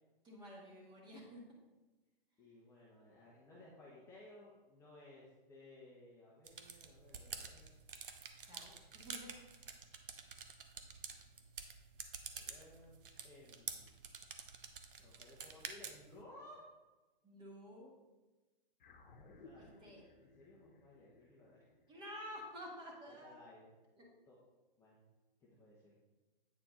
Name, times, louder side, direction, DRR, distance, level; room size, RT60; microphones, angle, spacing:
voice 1, 0.2-1.4 8.5-8.7 9.0-9.3 17.2-17.9 19.6-20.0 21.9-23.4 24.0-24.1, equal, 15° right, -3 dB, 1.6 m, -51 dB
voice 2, 2.4-7.7 12.3-13.9 15.0-16.7 19.4-21.7 22.1-22.2 23.1-23.7 24.3-24.4 24.8-25.0 25.4-25.8, left 2 dB, 10° left, -6 dB, 0.9 m, -59 dB
sound 1, 6.5-16.2, right 6 dB, 65° right, 0.9 m, -49 dB
sound 2, 18.8-23.4, left 3 dB, 60° left, 1.1 m, -62 dB
8.5 x 4.5 x 3.8 m, 1.2 s
hypercardioid pair, 135°, 29 cm